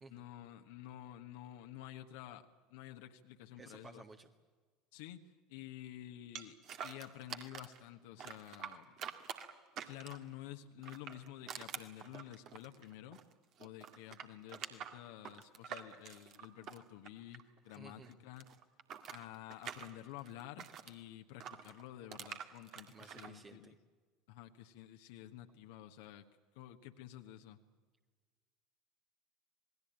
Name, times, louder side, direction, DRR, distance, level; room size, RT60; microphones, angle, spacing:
voice 1, 0.1-4.0 4.9-5.2 5.5-6.6 6.8-8.9 9.8-13.2 13.6-18.4 19.1-23.7 24.3-26.3 26.5-27.6, left 13 dB, 60° left, 6 dB, 1.4 m, -51 dB
voice 2, 3.6-4.3 17.7-18.1 22.9-23.8, right 3 dB, 25° right, 5 dB, 1.7 m, -55 dB
sound 1, 6.4-7.8 8.2-10.3 10.8-13.3 13.6-17.8 18.0-20.9 21.4-23.3, right 8 dB, 45° right, 2.0 m, -47 dB
27.5 x 20.0 x 8.9 m, 1.4 s
figure-of-eight pair, 70°, 0 cm